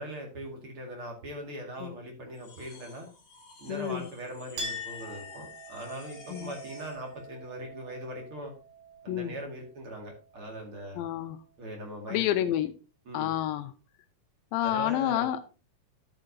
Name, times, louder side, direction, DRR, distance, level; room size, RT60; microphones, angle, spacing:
voice 1, 0.0-3.1 3.6-8.5 9.0-11.0 11.6-12.5 13.1-13.4 14.6-15.3, equal, 40° right, 1 dB, 2.6 m, -40 dB
sound 1, 2.3-7.1, left 3 dB, 45° left, 3.8 m, -53 dB
voice 2, 3.7-4.1 6.3-6.5 9.1-9.3 10.9-11.4 12.1-12.7 13.1-13.7 14.5-15.5, left 12 dB, 90° left, 9 dB, 2.5 m, -29 dB
Chink clink, 4.6-11.6, left 1 dB, 80° right, 6.5 m, -44 dB
11.0 x 9.0 x 2.7 m, 0.33 s
omnidirectional pair, 4.1 m